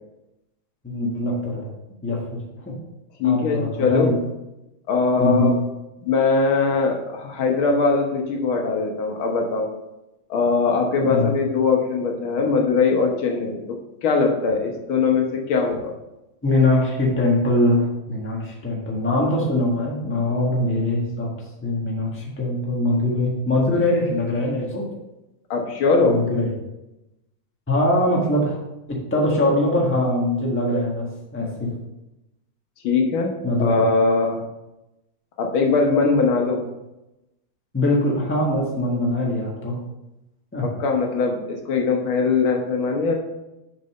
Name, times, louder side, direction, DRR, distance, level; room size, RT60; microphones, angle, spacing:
voice 1, 0.8-1.7 2.0-2.7 3.2-4.2 5.2-5.5 11.0-11.4 16.4-21.3 21.6-24.9 26.0-26.5 27.7-28.6 28.9-31.7 33.4-33.8 37.7-39.8 40.5-40.7, left 1 dB, 5° left, -2 dB, 1.3 m, -22 dB
voice 2, 3.2-4.1 4.9-5.5 6.0-9.7 10.3-13.8 14.0-15.9 25.5-26.2 32.8-33.3 33.6-34.4 35.4-36.6 40.6-43.1, left 4 dB, 80° left, 2 dB, 1.9 m, -21 dB
6.6 x 5.4 x 5.4 m, 0.94 s
omnidirectional pair, 2.3 m